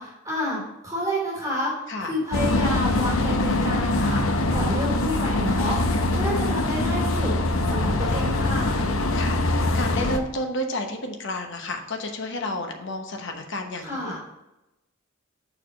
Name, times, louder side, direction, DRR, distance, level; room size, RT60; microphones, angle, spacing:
voice 1, 0.0-7.3 7.7-8.9 13.8-14.2, equal, 15° right, -6 dB, 3.0 m, -29 dB
sound 1, 2.3-10.2, left 2 dB, 80° left, 0.7 m, -23 dB
voice 2, 8.7-14.2, left 1 dB, 60° left, 4 dB, 1.0 m, -31 dB
6.6 x 4.9 x 5.2 m, 0.93 s
head